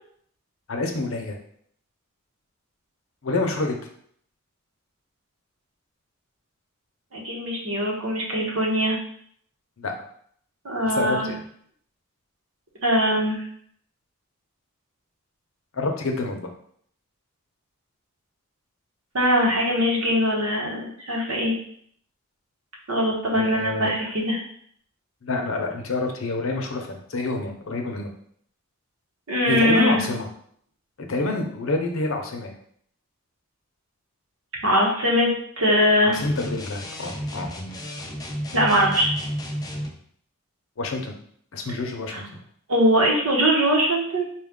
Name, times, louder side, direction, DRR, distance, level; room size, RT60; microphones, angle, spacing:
voice 1, 0.7-1.4 3.2-3.8 9.8-9.9 10.8-11.4 15.7-16.5 23.3-24.1 25.2-28.1 29.5-30.3 31.0-32.5 36.0-37.5 40.8-41.1 41.5-42.2, left 3 dB, 70° left, 3 dB, 0.7 m, -28 dB
voice 2, 7.1-9.0 10.6-11.3 12.8-13.4 19.1-21.5 22.9-24.4 29.3-30.0 34.6-35.3 35.6-36.2 38.5-39.1 42.1-42.2 42.7-44.3, equal, 80° right, -2 dB, 1.2 m, -21 dB
sound 1, 36.1-40.0, equal, 20° left, 0.4 m, -32 dB
4.4 x 2.4 x 3.6 m, 0.63 s
head